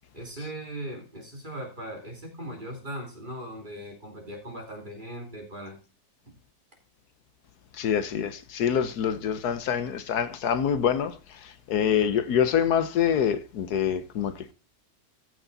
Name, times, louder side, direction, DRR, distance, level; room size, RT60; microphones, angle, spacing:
voice 1, 0.1-5.8 6.3-6.4, right 1 dB, 30° right, 2.9 m, -39 dB
voice 2, 7.7-14.5, left 8 dB, 85° left, 1.4 m, -26 dB
14.0 x 6.3 x 4.0 m
omnidirectional pair, 1.7 m